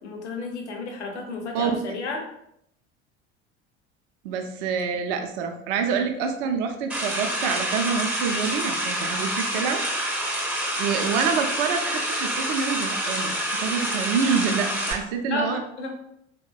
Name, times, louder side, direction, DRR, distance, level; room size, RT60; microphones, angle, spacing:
voice 1, 0.0-2.2 15.3-16.0, left 3 dB, 75° left, 2 dB, 0.7 m, -32 dB
voice 2, 4.2-9.8 10.3-15.6, right 6 dB, 55° right, 5 dB, 0.5 m, -27 dB
sound 1, 6.9-14.9, equal, 5° right, 0.5 m, -27 dB
3.7 x 2.0 x 2.3 m, 0.74 s
figure-of-eight pair, 60°, 34 cm